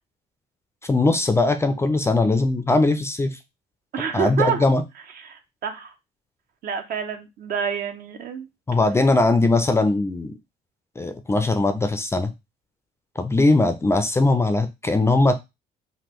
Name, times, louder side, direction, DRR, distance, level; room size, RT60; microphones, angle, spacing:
voice 1, 0.8-3.4 4.1-4.8 8.7-10.4 11.0-12.3 13.2-15.3, left 2 dB, 15° left, 0.3 m, -20 dB
voice 2, 3.9-4.6 5.3-5.9 6.6-8.5, right 7 dB, 60° right, 0.7 m, -28 dB
3.5 x 2.2 x 3.0 m
cardioid pair, 110°, 17 cm